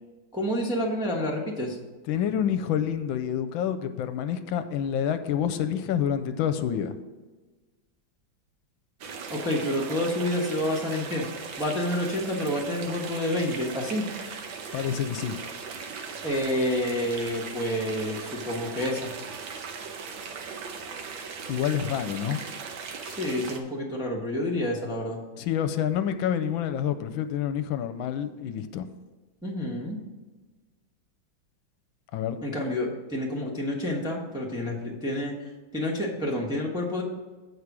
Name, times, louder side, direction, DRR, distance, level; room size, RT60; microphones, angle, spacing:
voice 1, 0.3-1.8 9.3-11.3 11.6-14.1 16.2-19.1 23.0-25.2 29.4-30.0 32.4-35.3 35.7-37.0, left 1 dB, 5° right, -2 dB, 0.8 m, -29 dB
voice 2, 2.1-6.9 14.7-15.4 21.5-22.4 25.4-28.9 32.1-32.4, left 9 dB, 80° left, 10 dB, 1.3 m, -28 dB
sound 1, 9.0-23.6, right 5 dB, 80° right, 1.6 m, -38 dB
8.2 x 4.9 x 6.0 m, 1.2 s
omnidirectional pair, 2.2 m